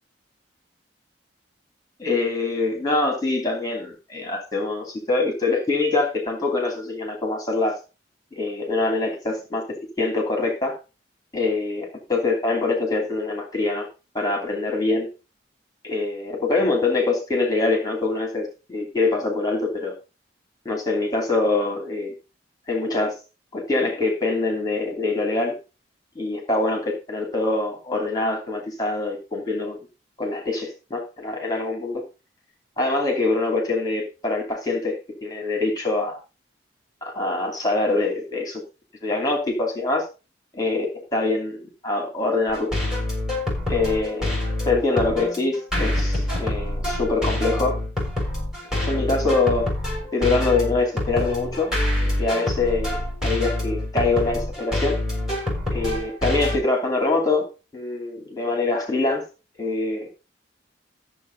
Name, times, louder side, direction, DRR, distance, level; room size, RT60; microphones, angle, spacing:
voice 1, 2.0-7.8 8.3-10.8 11.3-13.9 14.1-15.1 15.8-19.9 20.6-22.1 22.7-23.1 23.5-25.6 26.1-29.8 30.2-32.0 32.8-36.2 37.0-38.6 39.0-40.0 40.5-42.7 43.7-44.3 44.7-47.8 48.8-49.7 50.1-53.0 53.2-55.0 55.7-59.2 59.6-60.1, left 3 dB, 20° left, 1 dB, 3.0 m, -24 dB
sound 1, 42.5-56.6, left 1 dB, 5° right, 6.4 m, -26 dB
14.0 x 7.5 x 4.0 m, 0.31 s
head